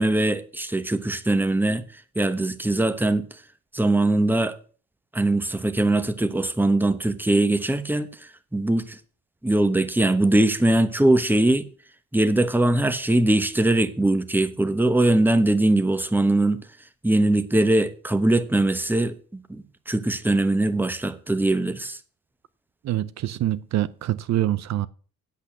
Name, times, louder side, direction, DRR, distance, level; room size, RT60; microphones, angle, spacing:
voice 1, 0.0-1.8 2.1-3.2 3.7-4.6 5.1-9.0 9.4-11.7 12.1-16.6 17.0-19.2 19.5-22.0, right 2 dB, 5° right, 1.1 m, -21 dB
voice 2, 22.8-24.9, right 13 dB, 60° right, 0.6 m, -25 dB
8.4 x 8.2 x 7.2 m
cardioid pair, 90°, 30 cm